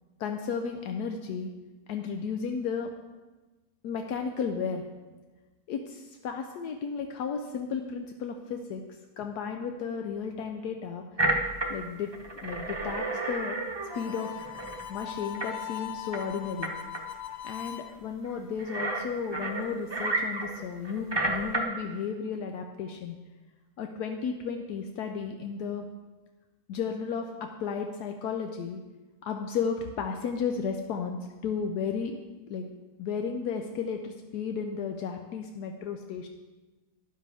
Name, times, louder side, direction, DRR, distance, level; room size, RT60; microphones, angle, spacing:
voice 1, 0.2-1.5 1.9-2.9 3.8-4.8 5.7-8.8 9.2-11.0 11.7-12.1 12.4-13.6 13.9-14.5 14.9-16.7 17.4-23.2 23.8-25.9 26.7-28.8 29.2-32.2 32.5-32.7 33.0-36.3, left 6 dB, 80° left, 4 dB, 1.2 m, -33 dB
sound 1, 11.2-11.7 12.0-14.8 15.3-15.5 16.1-16.2 16.6-16.7 16.9-17.0 18.2-18.3 18.6-21.6, right 2 dB, 20° right, 0.8 m, -31 dB
Harmonica, 13.9-17.9, left 11 dB, 60° left, 0.7 m, -40 dB
12.5 x 10.0 x 3.5 m, 1.2 s
omnidirectional pair, 1.7 m